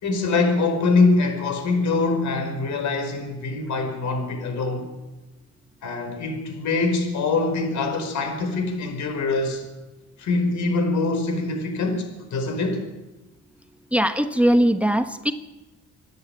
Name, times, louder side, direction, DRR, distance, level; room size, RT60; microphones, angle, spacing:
voice 1, 0.0-4.9 5.8-9.6 10.2-12.8, left 3 dB, 70° left, 5.1 m, -24 dB
voice 2, 13.9-15.3, equal, 5° right, 1.2 m, -20 dB
27.0 x 10.5 x 9.0 m
cardioid pair, 90°, 30 cm